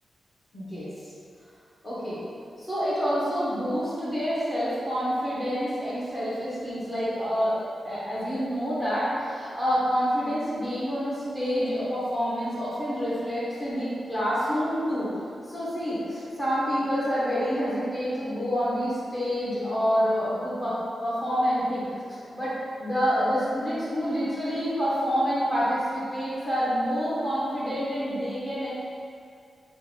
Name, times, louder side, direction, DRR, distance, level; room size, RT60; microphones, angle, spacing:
voice 1, 0.5-0.9 1.8-2.2 2.6-7.6 7.8-15.1 15.4-28.7, equal, 20° left, -10 dB, 1.2 m, -27 dB
4.3 x 2.5 x 3.8 m, 2.3 s
wide cardioid pair, 120°, 0 cm